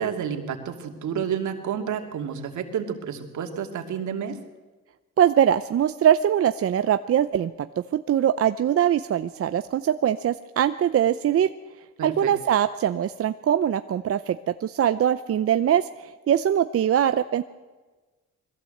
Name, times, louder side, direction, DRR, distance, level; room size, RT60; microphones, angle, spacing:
voice 1, 0.0-4.4 12.0-12.3, right 8 dB, 75° right, 4 dB, 2.7 m, -30 dB
voice 2, 5.2-7.7 7.9-11.5 12.0-17.4, right 10 dB, 50° right, 10 dB, 0.6 m, -22 dB
21.5 x 15.5 x 7.8 m, 1.3 s
cardioid pair, 90°, 30 cm